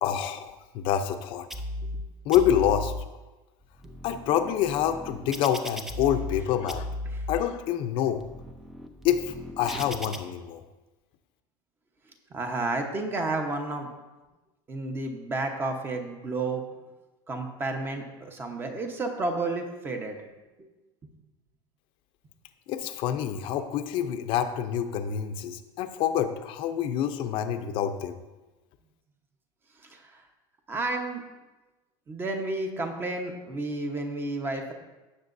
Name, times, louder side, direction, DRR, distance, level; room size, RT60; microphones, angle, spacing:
voice 1, 0.0-1.5 2.2-2.9 4.0-6.9 7.3-8.2 9.0-10.6 22.7-28.2, left 10 dB, 45° left, 8 dB, 0.7 m, -27 dB
sound 1, 1.5-2.0 2.3-3.0 3.6-6.4 6.7-7.4 8.0-10.2, left 1 dB, 5° right, 0.5 m, -36 dB
voice 2, 12.3-13.9 14.7-16.6 17.3-20.2 29.9-30.2 30.7-31.2 32.1-34.7, right 2 dB, 20° right, 4 dB, 1.1 m, -31 dB
16.5 x 6.8 x 2.7 m, 1.1 s
supercardioid pair, 155°, 12 cm